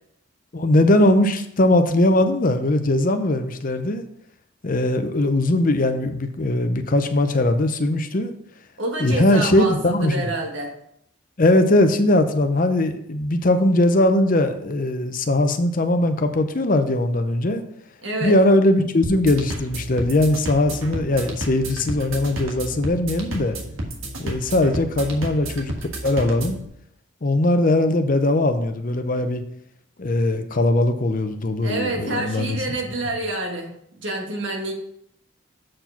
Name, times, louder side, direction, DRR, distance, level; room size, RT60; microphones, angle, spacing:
voice 1, 0.5-4.0 4.6-8.3 9.0-10.3 11.4-17.6 18.2-23.6 24.2-25.7 26.0-26.6 27.2-29.4 30.0-32.6, left 1 dB, 40° left, 8 dB, 0.6 m, -20 dB
voice 2, 8.8-10.7 18.0-18.3 31.6-34.7, right 2 dB, 65° right, 1 dB, 1.7 m, -27 dB
sound 1, 19.0-26.6, right 1 dB, 80° right, 1.5 m, -32 dB
7.6 x 4.7 x 5.7 m, 0.72 s
head